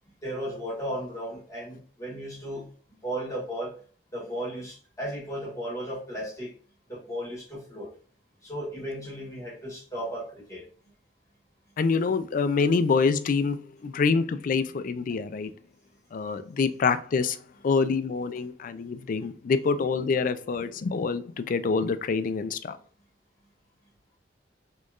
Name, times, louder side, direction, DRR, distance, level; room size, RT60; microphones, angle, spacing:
voice 1, 0.2-2.7 3.0-3.7 4.1-6.5 6.9-7.9 8.4-10.6, equal, 20° left, 1.6 m, -35 dB
voice 2, 11.8-15.5 16.1-17.4 17.6-22.8, left 4 dB, 50° left, 0.3 m, -26 dB
4.2 x 3.0 x 2.4 m
head